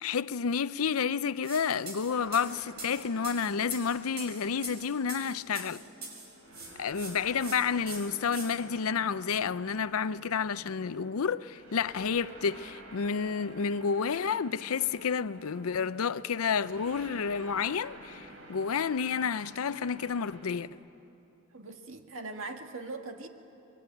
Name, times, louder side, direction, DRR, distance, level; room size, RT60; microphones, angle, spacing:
voice 1, 0.0-5.8 6.8-20.7, left 6 dB, 85° left, 0.6 m, -30 dB
sound 1, 1.4-1.6 1.9-6.3 6.5-7.1 7.4-7.6 7.9-8.5, right 3 dB, 50° right, 5.8 m, -42 dB
sound 2, 2.1-20.7, right 1 dB, 80° right, 3.9 m, -50 dB
voice 2, 21.5-23.3, right 3 dB, 65° right, 1.9 m, -40 dB
28.0 x 22.5 x 9.1 m
head